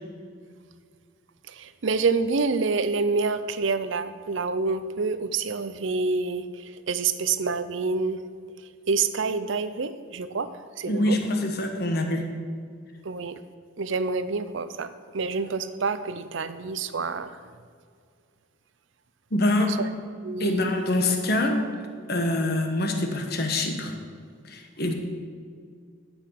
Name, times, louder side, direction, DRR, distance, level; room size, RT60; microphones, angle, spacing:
voice 1, 1.5-8.2 8.9-10.5 10.8-11.2 13.0-13.4 13.8-17.3 19.8-19.9 20.2-20.7, right 4 dB, 70° right, 12 dB, 0.6 m, -27 dB
voice 2, 10.8-12.3 19.3-19.7 20.4-21.6 22.1-24.0 24.4-24.9, left 1 dB, 50° left, 4 dB, 1.3 m, -25 dB
11.0 x 8.0 x 5.8 m, 2.1 s
head